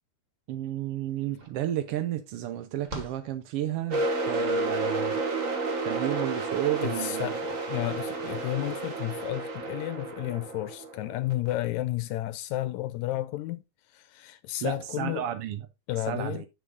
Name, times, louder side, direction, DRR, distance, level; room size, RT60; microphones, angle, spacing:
voice 1, 0.5-5.2 5.8-7.3 14.6-15.6 16.1-16.5, right 12 dB, 75° right, 1.4 m, -32 dB
sound 1, 0.8-0.9 1.1-4.2, right 1 dB, 20° right, 1.4 m, -45 dB
sound 2, 3.9-11.5, right 2 dB, 40° right, 1.2 m, -31 dB
voice 2, 6.8-13.6 13.9-15.3 15.9-16.5, left 16 dB, 80° left, 1.9 m, -32 dB
7.3 x 6.3 x 3.9 m
omnidirectional pair, 3.4 m